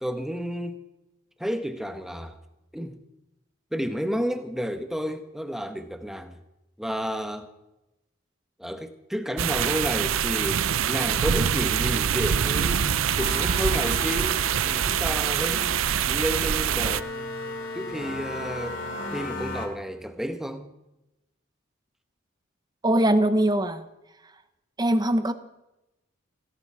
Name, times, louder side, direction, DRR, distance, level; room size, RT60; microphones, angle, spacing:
voice 1, 0.0-0.8 1.4-2.4 2.7-3.0 3.7-6.4 6.8-7.5 8.6-12.9 13.2-15.8 16.1-17.1 17.7-18.8 19.1-20.7, equal, ahead, 1.1 m, -31 dB
sound 1, 9.4-17.0, right 8 dB, 75° right, 0.5 m, -24 dB
sound 2, 11.9-19.4, equal, 85° left, 6.8 m, -46 dB
sound 3, 13.2-19.7, left 3 dB, 60° left, 3.1 m, -36 dB
voice 2, 22.8-23.9 24.8-25.3, right 1 dB, 20° right, 0.9 m, -21 dB
17.0 x 16.5 x 4.8 m
head